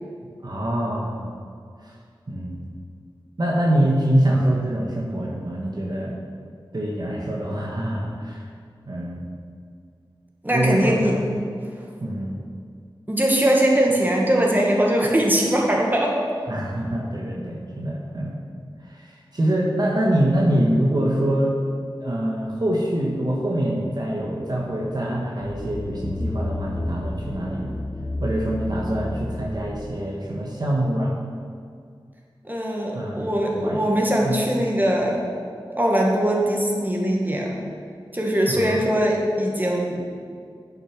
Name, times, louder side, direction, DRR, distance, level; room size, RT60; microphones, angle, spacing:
voice 1, 0.4-1.2 1.8-1.9 2.3-2.6 3.4-6.2 6.7-8.5 8.9-9.3 10.5-11.2 12.0-12.4 16.5-18.4 18.8-21.5 22.0-27.8 28.2-31.2 32.9-33.8 34.2-34.4 38.4-38.7, right 1 dB, 50° right, -3 dB, 1.4 m, -24 dB
voice 2, 10.4-11.1 13.1-16.2 32.4-35.2 35.7-37.6 38.1-40.0, right 1 dB, 20° right, -2 dB, 1.8 m, -21 dB
sound 1, 25.4-29.8 30.3-30.4, left 1 dB, 45° left, 1.4 m, -31 dB
10.0 x 6.5 x 6.0 m, 2.2 s
wide cardioid pair, 75°, 9 cm